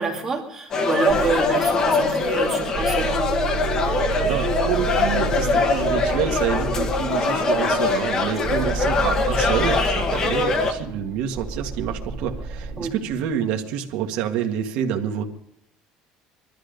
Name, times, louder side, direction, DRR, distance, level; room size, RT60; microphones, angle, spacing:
voice 1, 0.0-3.2 8.4-8.6 9.0-9.1 12.8-13.0, right 4 dB, 20° right, 1 dB, 2.7 m, -26 dB
sound 1, 0.7-10.7, left 3 dB, 25° left, 1.5 m, -22 dB
sound 2, 1.1-13.2, right 5 dB, 45° right, 2.5 m, -31 dB
voice 2, 4.2-15.2, right 9 dB, 65° right, 4 dB, 1.7 m, -27 dB
21.5 x 13.0 x 5.3 m, 0.74 s
cardioid pair, 170°, 2 cm